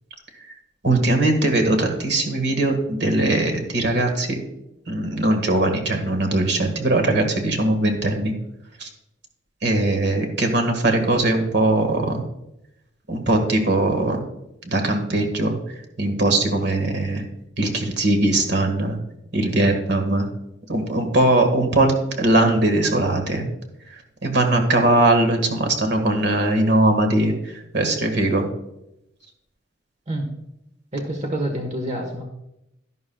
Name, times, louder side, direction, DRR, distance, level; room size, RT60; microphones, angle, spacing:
voice 1, 0.8-4.4 4.9-8.3 8.8-8.9 9.6-12.2 13.1-14.2 14.6-17.2 17.6-19.0 19.3-20.3 20.7-23.4 23.9-28.4, right 2 dB, 60° right, 4 dB, 1.7 m, -20 dB
voice 2, 30.9-32.2, right 1 dB, 35° right, 2 dB, 1.3 m, -27 dB
12.0 x 11.5 x 2.3 m, 0.85 s
head